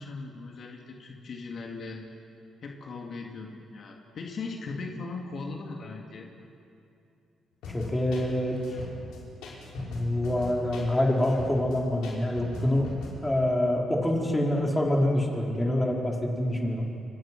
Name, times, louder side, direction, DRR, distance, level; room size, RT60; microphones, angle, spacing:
voice 1, 0.0-2.0 2.6-6.3, left 3 dB, 55° left, 1 dB, 2.5 m, -38 dB
sound 1, 7.6-13.1, left 3 dB, 90° left, 6.0 m, -40 dB
voice 2, 7.7-8.6 9.7-12.9 13.2-16.8, left 1 dB, 15° left, -1 dB, 4.5 m, -26 dB
30.0 x 24.5 x 6.2 m, 2.6 s
cardioid pair, 90°, 0 cm